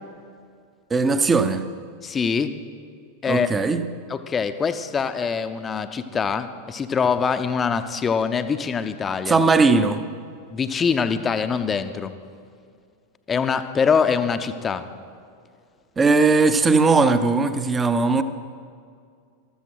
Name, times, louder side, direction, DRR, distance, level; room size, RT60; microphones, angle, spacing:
voice 1, 0.9-1.6 3.3-3.8 9.3-10.0 16.0-18.2, right 4 dB, 15° right, 11 dB, 0.7 m, -18 dB
voice 2, 2.0-2.6 3.2-3.5 4.1-9.4 10.5-12.1 13.3-14.9, left 6 dB, 20° left, 10 dB, 0.7 m, -24 dB
13.5 x 13.5 x 4.6 m, 2.2 s
figure-of-eight pair, 90°, 0 cm